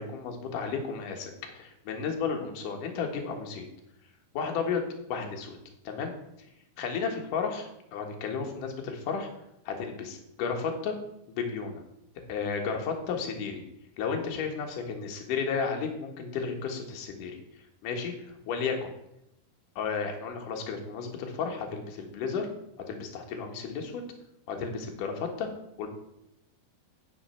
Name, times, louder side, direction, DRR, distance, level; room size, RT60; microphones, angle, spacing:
voice 1, 0.0-3.7 4.3-4.8 5.1-5.6 5.8-6.1 6.8-9.3 9.7-10.9 11.3-11.8 12.3-13.6 14.0-17.4 17.8-18.1 18.5-18.9 19.8-22.5 22.9-24.0 24.5-25.5 25.8-25.9, left 5 dB, 60° left, 2 dB, 2.8 m, -33 dB
9.5 x 6.7 x 5.7 m, 0.81 s
omnidirectional pair, 4.6 m